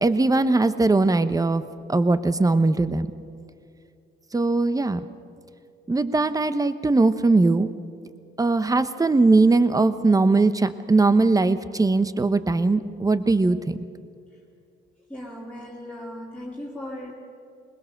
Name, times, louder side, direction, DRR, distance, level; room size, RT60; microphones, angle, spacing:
voice 1, 0.0-1.6 1.9-3.1 4.3-5.0 5.9-7.7 8.4-13.8, right 3 dB, 15° right, 12 dB, 1.0 m, -20 dB
voice 2, 15.1-17.1, left 1 dB, 5° left, -4 dB, 2.3 m, -37 dB
21.0 x 20.5 x 6.7 m, 2.4 s
cardioid pair, 90°, 20 cm